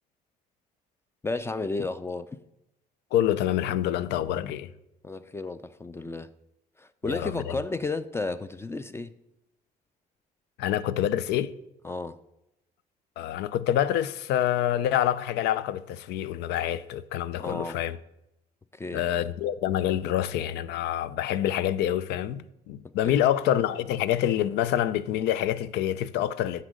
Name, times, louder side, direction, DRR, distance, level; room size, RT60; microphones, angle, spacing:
voice 1, 1.2-2.4 5.0-6.3 6.8-9.1 11.8-12.2 17.4-17.8 18.7-19.1 22.8-23.2, left 3 dB, 15° left, 0.3 m, -33 dB
voice 2, 3.1-4.7 7.1-7.6 10.6-11.5 13.2-18.0 18.9-26.6, left 11 dB, 85° left, 0.5 m, -27 dB
9.8 x 4.1 x 6.4 m
cardioid pair, 110°, 17 cm